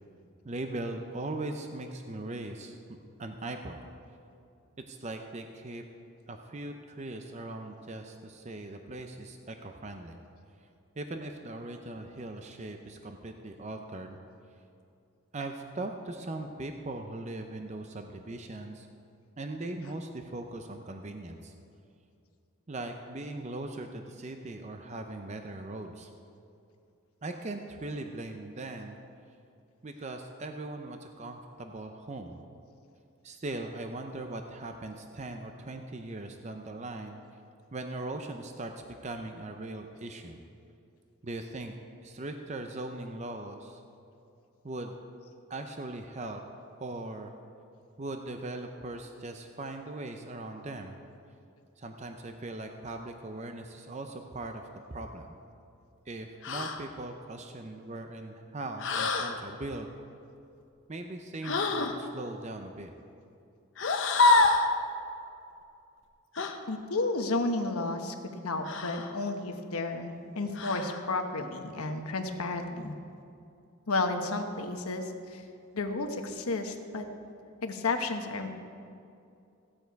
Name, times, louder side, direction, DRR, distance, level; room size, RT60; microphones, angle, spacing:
voice 1, 0.4-2.8 3.2-3.8 4.9-5.8 6.3-10.2 11.0-14.2 15.3-18.9 19.4-21.5 22.7-26.1 27.2-29.0 29.8-32.4 33.2-37.2 37.7-38.7 39.0-40.4 41.2-41.7 42.0-43.8 44.6-45.0 45.5-46.4 46.8-47.3 48.0-51.0 51.8-55.3 56.1-59.9 60.9-62.9, right 2 dB, 30° right, 5 dB, 0.6 m, -39 dB
sound 1, 56.4-56.8 58.8-59.4 61.4-62.0 63.8-64.7 66.4-66.6 68.6-69.1 70.5-71.0, left 3 dB, 60° left, 0.9 m, -26 dB
voice 2, 66.7-68.1 68.4-73.0 73.9-75.0 75.3-75.4 75.7-77.1 77.6-78.5, left 3 dB, 90° left, 5 dB, 1.1 m, -32 dB
15.5 x 8.9 x 4.6 m, 2.6 s
head